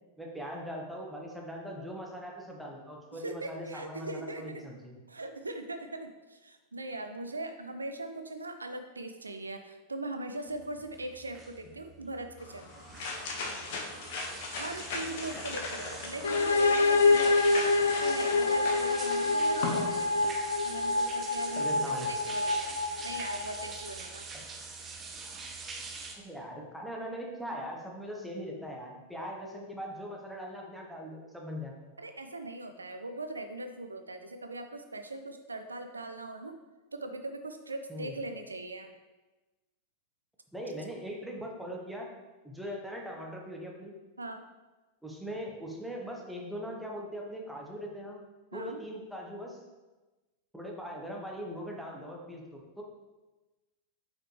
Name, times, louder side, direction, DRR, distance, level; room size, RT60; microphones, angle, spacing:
voice 1, 0.2-4.9 15.3-15.4 21.5-22.1 26.2-31.9 37.9-38.2 40.5-42.1 42.4-43.9 45.0-48.2 48.5-49.6 50.5-52.8, equal, ahead, -1 dB, 1.1 m, -40 dB
voice 2, 3.1-4.6 5.1-12.7 14.6-17.6 18.0-20.2 20.6-24.3 32.0-36.6 36.9-38.9 44.2-44.4 48.5-48.8, right 2 dB, 80° right, 7 dB, 0.4 m, -40 dB
sound 1, 10.5-26.2, right 4 dB, 25° right, 0.7 m, -44 dB
sound 2, 12.4-19.9, left 3 dB, 50° left, 1.0 m, -38 dB
sound 3, 16.2-23.9, left 3 dB, 70° left, 0.3 m, -27 dB
6.2 x 4.8 x 3.2 m, 1.2 s
figure-of-eight pair, 90°, 0 cm